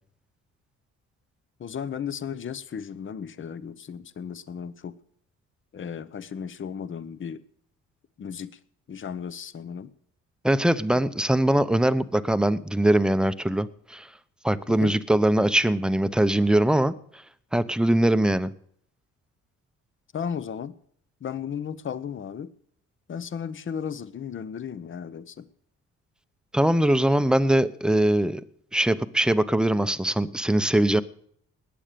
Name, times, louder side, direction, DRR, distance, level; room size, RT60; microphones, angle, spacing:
voice 1, 1.6-4.9 5.7-7.4 8.2-8.5 8.9-9.9 10.9-11.0 14.8-14.9 20.1-20.7 21.2-22.5 23.1-25.5, left 7 dB, 40° left, 0.9 m, -35 dB
voice 2, 10.4-14.1 14.4-16.9 17.5-18.5 26.5-28.4 28.7-31.0, right 1 dB, 5° right, 0.7 m, -22 dB
19.5 x 8.9 x 6.8 m
cardioid pair, 90°, 30 cm